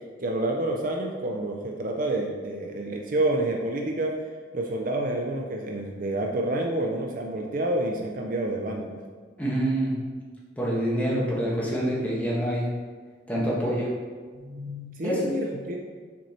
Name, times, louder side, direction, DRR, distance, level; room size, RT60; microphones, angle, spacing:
voice 1, 0.2-4.1 4.5-9.0 14.3-15.8, right 1 dB, 45° right, 1 dB, 0.5 m, -28 dB
voice 2, 9.4-9.9 10.6-12.7 13.3-13.9 15.0-15.3, equal, 10° left, -5 dB, 1.3 m, -26 dB
6.0 x 4.3 x 4.3 m, 1.5 s
head